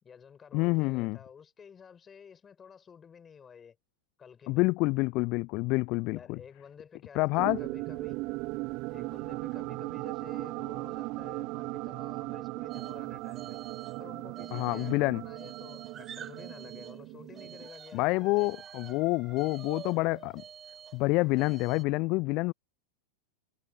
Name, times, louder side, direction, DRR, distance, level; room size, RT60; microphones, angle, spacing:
voice 1, 0.0-3.8 4.2-4.7 6.1-8.2 8.9-13.6 14.0-18.5, left 7 dB, 20° left, 5.2 m, -51 dB
voice 2, 0.5-1.2 4.5-6.4 7.1-7.6 14.5-15.2 17.9-20.4 20.9-22.5, left 24 dB, 40° left, 0.6 m, -27 dB
sound 1, 7.4-17.7, right 24 dB, 40° right, 1.7 m, -38 dB
sound 2, 12.7-13.0 13.3-14.0 14.3-17.0 17.3-21.8, right 8 dB, 25° right, 2.8 m, -48 dB
figure-of-eight pair, 90°, 0 cm